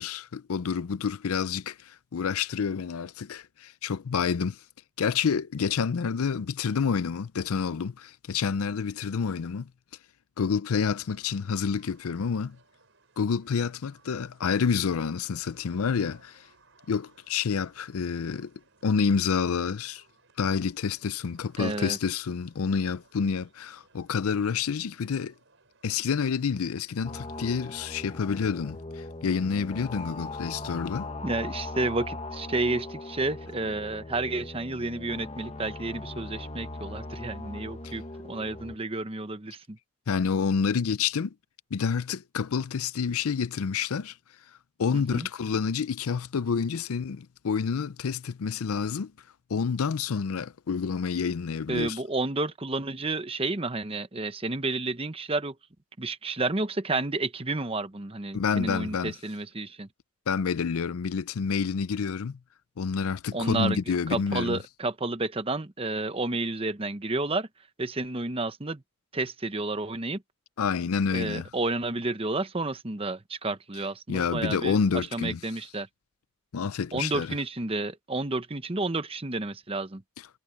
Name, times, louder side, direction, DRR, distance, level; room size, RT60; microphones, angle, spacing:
voice 1, 0.0-4.6 5.0-9.7 10.4-12.6 13.2-16.5 16.9-18.5 18.8-20.0 20.4-25.3 25.8-31.1 40.1-41.3 41.7-44.2 44.8-49.1 49.5-52.0 58.3-59.1 60.3-62.4 62.8-64.6 70.6-71.5 74.1-75.4 76.5-77.3, left 6 dB, 80° left, 0.5 m, -28 dB
sound 1, 10.9-28.8, right 3 dB, 60° right, 6.8 m, -63 dB
voice 2, 21.6-22.0 31.2-38.0 38.3-39.8 44.9-45.3 51.7-55.6 56.0-59.9 63.3-63.8 64.1-67.5 67.8-68.8 69.1-70.2 71.1-74.8 75.1-75.9 76.9-80.0, right 2 dB, 25° right, 1.0 m, -31 dB
sound 2, 27.0-38.8, left 2 dB, 30° left, 1.1 m, -39 dB
head